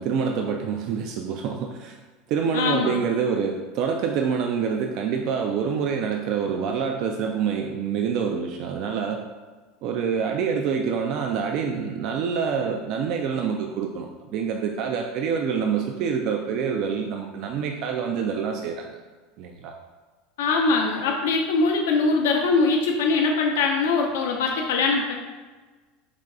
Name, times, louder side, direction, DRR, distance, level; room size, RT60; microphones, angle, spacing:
voice 1, 0.0-2.0 2.3-9.2 9.8-19.0 19.4-19.7, right 6 dB, 55° right, 3 dB, 0.3 m, -26 dB
voice 2, 2.5-2.9 20.4-25.1, left 4 dB, 85° left, 1 dB, 0.6 m, -22 dB
5.0 x 2.2 x 3.6 m, 1.3 s
supercardioid pair, 110°, 0 cm